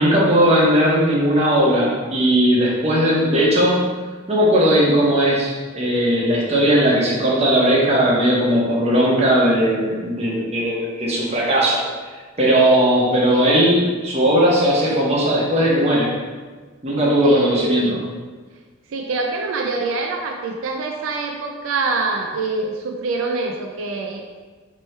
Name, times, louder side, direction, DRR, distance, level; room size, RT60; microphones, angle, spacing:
voice 1, 0.0-3.8 4.3-11.9 12.4-16.1 16.8-18.0, equal, 35° right, -5 dB, 1.0 m, -17 dB
voice 2, 17.2-18.0 18.9-24.2, right 3 dB, 85° right, 2 dB, 0.4 m, -25 dB
4.3 x 3.0 x 3.2 m, 1.4 s
head